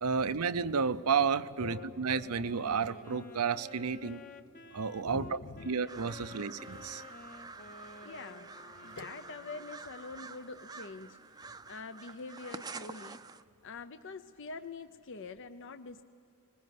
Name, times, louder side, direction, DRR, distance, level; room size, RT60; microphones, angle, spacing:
voice 1, 0.0-4.2 4.7-5.4 5.7-7.0, right 5 dB, 85° right, 14 dB, 0.7 m, -31 dB
voice 2, 1.6-2.8 5.0-5.7 6.3-6.4 8.0-11.2 11.7-13.2 13.6-16.0, left 4 dB, 55° left, 10 dB, 0.6 m, -45 dB
Wind instrument woodwind instrument, 1.6-9.9, left 3 dB, 40° left, 1.1 m, -52 dB
sound 1, 5.9-13.4, right 4 dB, 15° right, 0.5 m, -48 dB
21.5 x 21.0 x 9.4 m, 2.7 s
head